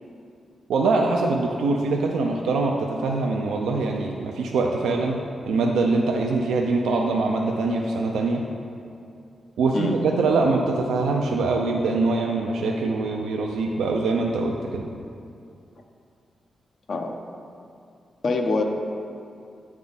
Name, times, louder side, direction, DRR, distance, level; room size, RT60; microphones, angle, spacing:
voice 1, 0.7-8.4 9.6-14.9, right 3 dB, 85° right, 1 dB, 0.4 m, -23 dB
voice 2, 18.2-18.6, left 3 dB, 65° left, 2 dB, 0.7 m, -24 dB
8.4 x 3.5 x 4.0 m, 2.4 s
supercardioid pair, 50°, 0 cm